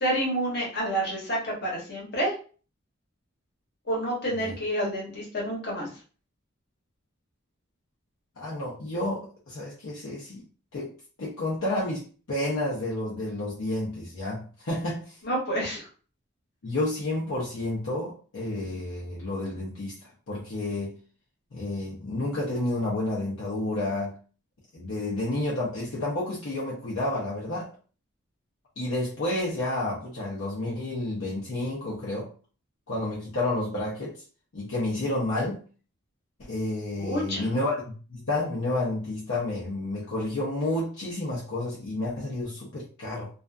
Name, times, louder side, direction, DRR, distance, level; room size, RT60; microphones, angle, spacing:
voice 1, 0.0-2.3 3.9-5.9 15.2-15.9 37.0-37.5, right 1 dB, 50° left, -3 dB, 1.0 m, -28 dB
voice 2, 8.4-10.4 10.7-15.2 16.6-20.9 21.5-24.1 24.7-27.7 28.8-32.3 32.9-34.2 34.5-35.6 36.4-43.3, left 2 dB, 70° left, -6 dB, 0.6 m, -30 dB
2.5 x 2.4 x 2.2 m, 0.38 s
head